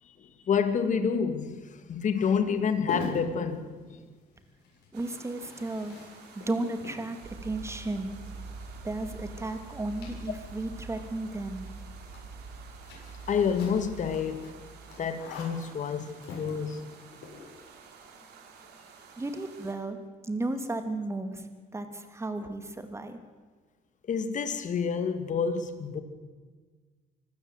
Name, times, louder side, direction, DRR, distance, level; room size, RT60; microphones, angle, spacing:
voice 1, 0.0-3.7 13.3-14.5 15.0-16.9 24.1-26.0, left 6 dB, 50° left, 9 dB, 2.4 m, -28 dB
sound 1, 2.0-17.6, left 3 dB, 80° left, 7.4 m, -45 dB
voice 2, 4.9-6.0 6.3-8.1 8.8-11.6 19.2-20.0 20.2-21.5 21.7-23.2, right 2 dB, 15° right, 8 dB, 2.8 m, -34 dB
sound 2, 4.9-19.7, right 6 dB, 75° right, 3.9 m, -52 dB
sound 3, 7.2-15.5, right 4 dB, 60° right, 5.3 m, -45 dB
25.0 x 15.5 x 8.2 m, 1.4 s
cardioid pair, 110°, 17 cm